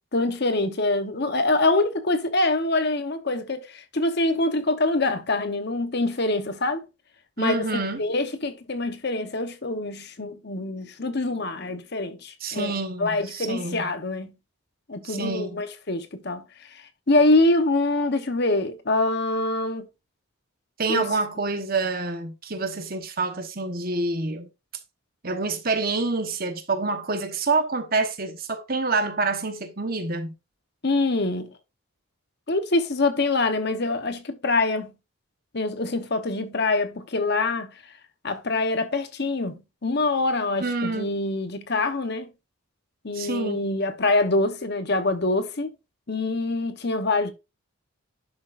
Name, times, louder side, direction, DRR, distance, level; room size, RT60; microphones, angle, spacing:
voice 1, 0.1-6.9 7.4-12.7 13.0-14.3 14.9-16.4 17.1-19.8 20.9-21.0 30.8-31.5 32.5-34.9 35.5-37.7 38.2-39.6 39.8-42.3 43.0-45.7 46.1-47.3, left 2 dB, 50° left, 1.0 m, -25 dB
voice 2, 7.4-8.1 12.4-13.8 15.0-15.6 20.8-24.5 25.2-30.3 40.6-41.1 43.1-43.7, right 3 dB, 45° right, 1.2 m, -27 dB
11.0 x 6.2 x 2.5 m
head